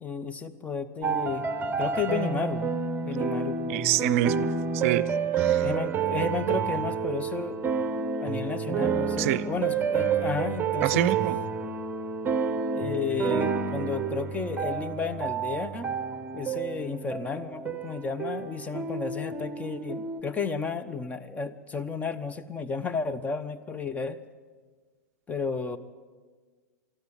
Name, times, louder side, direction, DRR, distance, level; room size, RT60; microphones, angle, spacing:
voice 1, 0.0-1.4 1.8-2.7 3.0-3.7 5.6-7.6 8.2-11.1 12.7-15.9 16.3-24.2 25.3-25.8, left 5 dB, 15° left, 9 dB, 1.1 m, -32 dB
sound 1, 1.0-20.2, right 6 dB, 20° right, 1.2 m, -29 dB
voice 2, 3.7-4.5 4.7-5.1 5.4-5.7 9.2-9.5 10.8-11.4, right 14 dB, 50° right, 18 dB, 0.6 m, -26 dB
23.0 x 13.0 x 8.9 m, 1.5 s
figure-of-eight pair, 100°, 9 cm